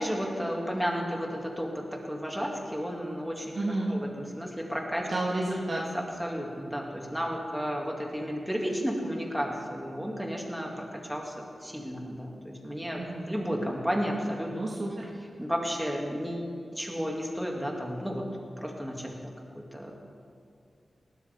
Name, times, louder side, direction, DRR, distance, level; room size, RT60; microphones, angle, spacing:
voice 1, 0.0-3.5 3.9-5.1 5.7-13.0 13.3-14.5 15.4-18.2 18.6-19.9, equal, 5° right, -1 dB, 2.3 m, -33 dB
voice 2, 3.5-3.9 5.0-5.8 13.0-13.3 14.5-15.1, right 2 dB, 60° right, -4 dB, 1.7 m, -31 dB
19.0 x 12.5 x 3.6 m, 2.3 s
wide cardioid pair, 70°, 0 cm